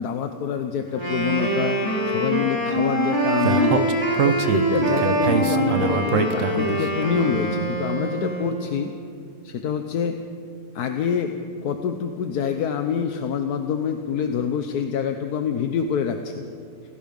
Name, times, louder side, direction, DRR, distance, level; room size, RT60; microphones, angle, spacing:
voice 1, 0.0-1.8 2.0-3.9 4.2-8.9 9.4-10.2 10.7-11.3 11.6-16.4, left 7 dB, 60° left, 6 dB, 1.3 m, -26 dB
Wind instrument woodwind instrument, 0.9-8.6, right 1 dB, 15° left, 3.6 m, -24 dB
Speech, 3.4-6.8, right 6 dB, 50° right, 1.2 m, -24 dB
29.0 x 16.5 x 5.4 m, 2.4 s
omnidirectional pair, 2.0 m